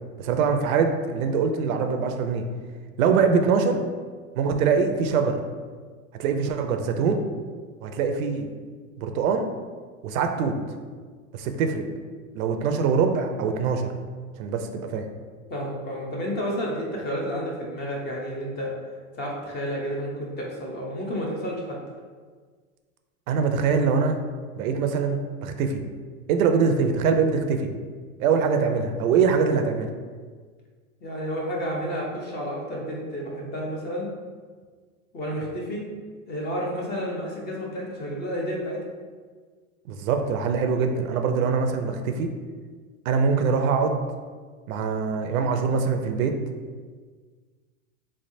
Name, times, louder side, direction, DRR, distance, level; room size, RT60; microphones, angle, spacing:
voice 1, 0.2-2.4 3.0-3.8 4.4-5.4 6.2-7.2 7.8-8.5 9.0-9.5 10.0-10.6 11.3-11.8 12.3-13.9 14.4-15.1 23.3-24.2 24.6-25.8 26.3-27.7 28.2-29.9 39.9-42.3 43.1-44.0 44.7-46.4, right 5 dB, 70° right, 6 dB, 0.5 m, -23 dB
voice 2, 15.5-18.7 19.2-21.8 31.0-34.1 35.1-35.8 36.3-38.8, equal, 25° left, -2 dB, 0.6 m, -31 dB
3.6 x 3.2 x 2.6 m, 1.5 s
supercardioid pair, 130°, 43 cm